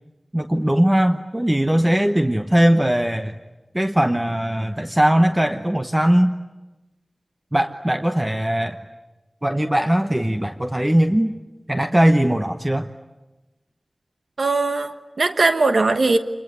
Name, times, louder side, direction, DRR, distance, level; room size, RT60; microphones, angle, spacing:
voice 1, 0.3-3.3 3.7-6.3 7.5-8.8 9.4-11.3 11.7-12.9, right 1 dB, 15° right, 7 dB, 0.9 m, -19 dB
voice 2, 14.4-16.2, right 3 dB, 85° right, 9 dB, 1.2 m, -19 dB
26.5 x 22.0 x 9.7 m, 1.1 s
wide cardioid pair, 65°, 0 cm